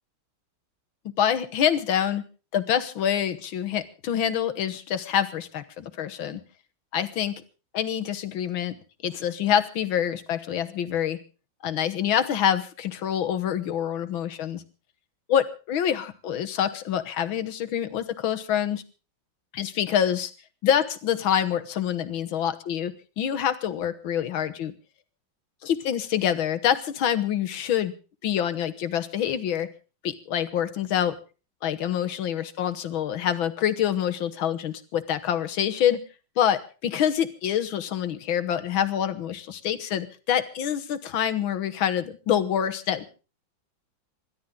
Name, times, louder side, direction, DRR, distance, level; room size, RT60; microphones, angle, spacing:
voice 1, 1.2-2.2 2.5-6.4 6.9-7.3 7.7-8.8 9.0-11.2 11.6-14.6 15.3-18.8 19.5-20.3 20.6-24.7 25.6-27.9 28.2-29.7 30.0-31.1 31.6-36.0 36.4-43.0, left 9 dB, 80° left, 10 dB, 2.0 m, -26 dB
27.0 x 12.5 x 3.8 m, 0.35 s
omnidirectional pair, 2.2 m